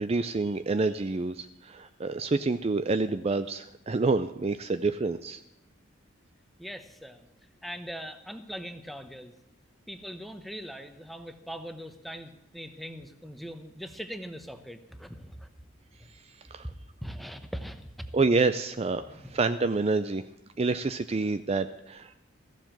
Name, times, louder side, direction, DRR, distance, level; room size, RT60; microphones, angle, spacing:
voice 1, 0.0-5.4 16.5-16.6 18.1-20.2 20.6-22.1, right 3 dB, 30° right, 11 dB, 0.4 m, -28 dB
voice 2, 6.6-7.3 7.6-9.3 9.9-15.5 16.6-16.7 17.0-18.1 19.1-19.3, equal, ahead, 9 dB, 0.9 m, -41 dB
15.0 x 7.5 x 9.0 m, 0.87 s
head